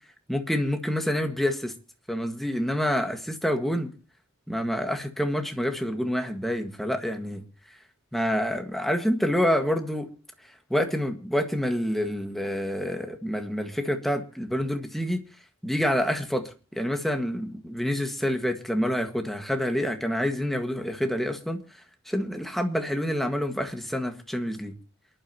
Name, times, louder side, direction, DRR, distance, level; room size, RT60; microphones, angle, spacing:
voice 1, 0.3-1.7 2.1-3.9 4.5-7.4 8.1-10.1 10.7-15.2 15.6-21.6 22.0-24.7, equal, ahead, 1.7 m, -27 dB
28.5 x 11.5 x 2.9 m
head